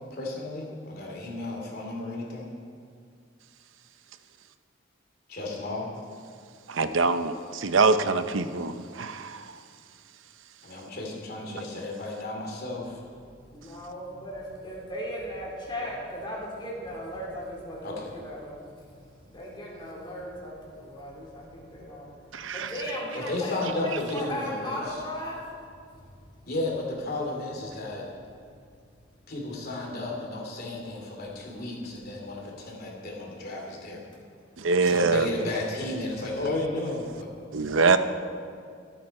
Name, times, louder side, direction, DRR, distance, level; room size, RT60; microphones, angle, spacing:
voice 1, 0.1-2.5 5.3-5.9 10.6-13.0 17.8-18.1 23.1-25.0 26.5-28.1 29.3-34.0 34.8-37.3, left 2 dB, 55° left, -1 dB, 2.9 m, -33 dB
voice 2, 6.7-9.5 22.3-22.7 34.6-35.3 37.5-38.0, right 4 dB, 90° right, 10 dB, 0.8 m, -24 dB
voice 3, 13.4-26.5 34.2-35.5, equal, 25° left, -4 dB, 3.8 m, -38 dB
25.5 x 9.3 x 4.4 m, 2.2 s
head